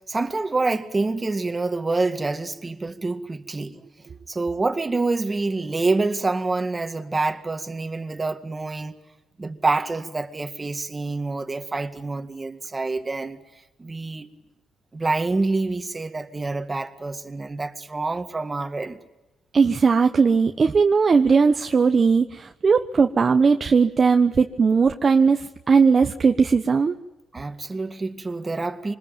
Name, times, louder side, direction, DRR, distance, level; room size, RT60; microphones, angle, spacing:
voice 1, 0.0-3.9 4.3-9.0 9.4-13.4 13.8-14.3 14.9-19.0 27.3-29.0, right 3 dB, 25° right, 2.0 m, -27 dB
voice 2, 19.5-27.0, right 5 dB, 40° right, 1.1 m, -18 dB
25.5 x 20.5 x 9.2 m
cardioid pair, 90°, 0 cm